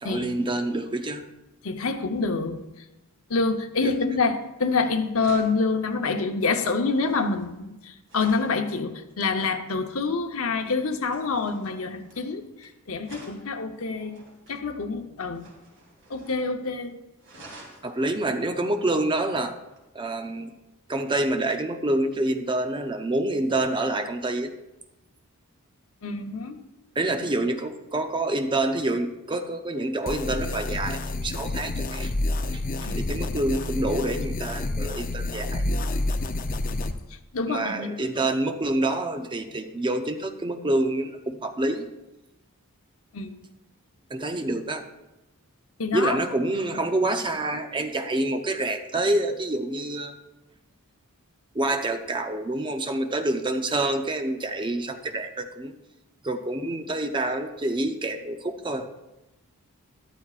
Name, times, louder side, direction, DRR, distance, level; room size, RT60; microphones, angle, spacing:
voice 1, 0.0-1.2 3.8-3.9 17.8-19.5 19.9-20.5 20.9-24.5 27.0-32.1 32.5-32.6 33.0-35.6 37.5-41.9 44.1-44.8 45.9-50.1 51.5-55.7 56.2-58.9, right 2 dB, 20° right, 7 dB, 0.6 m, -27 dB
voice 2, 1.6-2.8 3.3-14.2 14.5-15.5 16.1-17.0 26.0-26.6 32.8-33.0 36.7-36.8 37.3-37.9 43.1-43.4 45.8-46.2, left 4 dB, 65° left, 6 dB, 0.9 m, -27 dB
sound 1, 5.2-8.6 10.6-12.7 13.0-14.6 15.3-16.5 16.7-16.8 17.2-17.9 19.7-19.8, right 1 dB, 55° right, 3.1 m, -49 dB
sound 2, 30.1-36.9, left 2 dB, 40° left, 0.6 m, -29 dB
13.0 x 12.0 x 2.5 m, 0.98 s
head